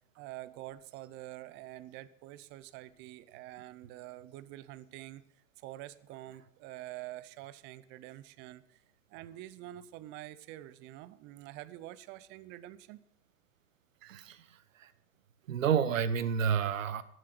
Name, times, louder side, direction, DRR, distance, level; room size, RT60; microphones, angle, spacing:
voice 1, 0.2-5.2 5.6-8.8 9.1-13.0 14.0-14.3, right 15 dB, 30° right, 16 dB, 0.5 m, -47 dB
voice 2, 14.1-14.5 14.8-14.9 15.5-17.0, right 7 dB, 85° right, 15 dB, 1.1 m, -30 dB
12.5 x 7.8 x 7.8 m, 0.76 s
hypercardioid pair, 130°, 38 cm